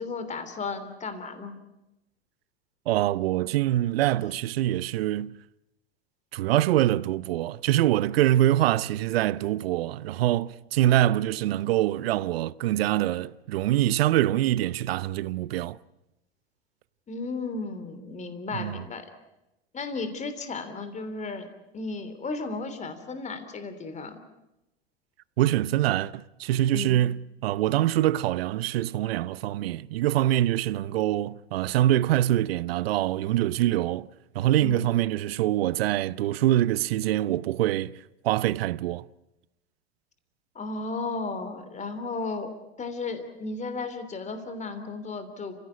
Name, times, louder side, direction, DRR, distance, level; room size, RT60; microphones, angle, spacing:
voice 1, 0.0-1.5 3.9-4.0 17.1-19.1 19.7-21.5 21.7-24.2 26.7-27.0 34.6-34.9 40.5-42.5 42.8-45.5, left 3 dB, 20° left, 3.3 m, -34 dB
voice 2, 2.9-5.4 6.3-15.8 18.5-18.8 25.4-27.2 27.4-34.1 34.3-37.9 38.2-39.1, right 13 dB, 70° right, 0.8 m, -24 dB
29.5 x 16.0 x 8.5 m
hypercardioid pair, 95°, 32 cm